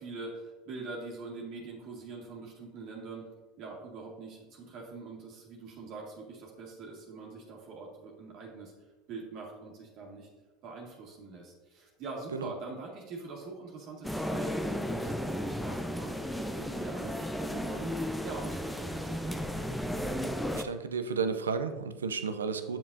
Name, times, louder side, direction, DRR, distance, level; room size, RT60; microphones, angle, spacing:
voice 1, 0.0-3.3 3.6-8.7 9.1-10.3 10.6-19.7, right 3 dB, 55° right, -1 dB, 1.8 m, -44 dB
sound 1, 14.0-20.6, equal, 5° left, 0.6 m, -34 dB
voice 2, 20.5-22.8, right 5 dB, 90° right, 9 dB, 0.5 m, -32 dB
7.5 x 7.1 x 2.7 m, 1.2 s
hypercardioid pair, 85°, 0 cm